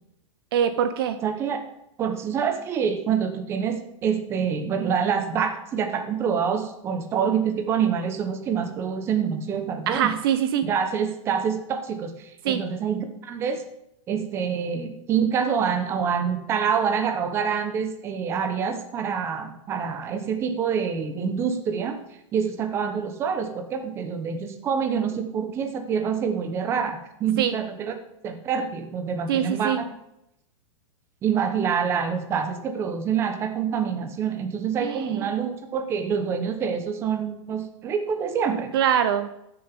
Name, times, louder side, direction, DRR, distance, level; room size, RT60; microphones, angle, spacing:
voice 1, 0.5-1.2 9.9-10.6 12.4-12.6 27.4-27.5 29.3-29.8 34.8-35.3 38.7-39.3, right 9 dB, 45° right, 10 dB, 0.7 m, -23 dB
voice 2, 1.2-1.6 2.0-10.2 10.6-13.6 14.1-22.0 22.3-27.9 28.2-29.9 31.2-38.7, right 7 dB, 15° right, 6 dB, 0.9 m, -26 dB
14.0 x 6.9 x 3.6 m, 0.82 s
supercardioid pair, 170°, 17 cm